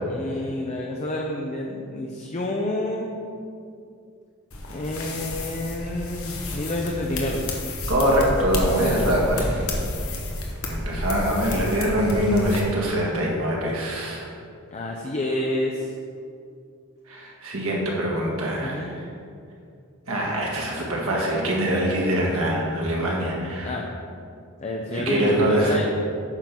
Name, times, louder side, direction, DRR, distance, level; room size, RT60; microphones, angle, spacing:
voice 1, 0.1-3.1 4.7-7.4 8.8-9.2 14.7-15.9 18.6-18.9 23.6-23.9 24.6-25.8, left 1 dB, 30° left, 0 dB, 0.5 m, -28 dB
sound 1, 4.5-12.6, left 1 dB, 70° left, 1.2 m, -30 dB
voice 2, 7.9-9.6 10.7-14.2 17.1-19.0 20.1-23.7 24.9-25.8, equal, 70° right, -3 dB, 1.7 m, -24 dB
9.0 x 3.8 x 5.9 m, 2.4 s
head